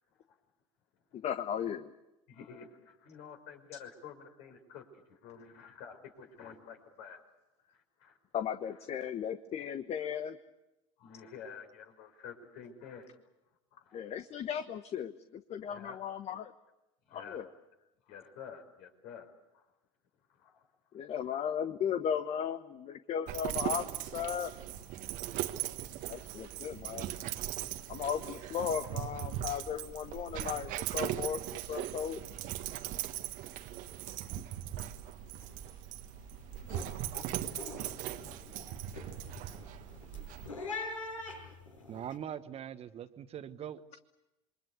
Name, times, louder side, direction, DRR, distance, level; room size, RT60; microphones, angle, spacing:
voice 1, 1.1-1.9 8.3-10.4 13.9-16.5 17.1-17.5 20.9-24.5 26.1-27.1 27.9-32.2, left 8 dB, 40° left, 10 dB, 1.3 m, -36 dB
voice 2, 2.3-7.2 7.7-8.2 11.0-13.1 13.9-14.0 15.7-16.0 17.1-17.4 18.1-19.6 20.4-20.6, left 7 dB, 60° left, 4 dB, 5.4 m, -49 dB
Dog, 23.3-40.5, right 12 dB, 55° right, 1.6 m, -39 dB
sound 1, 34.8-35.1 35.3-35.8 36.2-42.1, left 3 dB, 85° left, 7.5 m, -44 dB
voice 3, 41.9-44.0, right 9 dB, 40° right, 11 dB, 1.4 m, -42 dB
28.0 x 23.0 x 8.3 m, 0.95 s
hypercardioid pair, 80°, 17 cm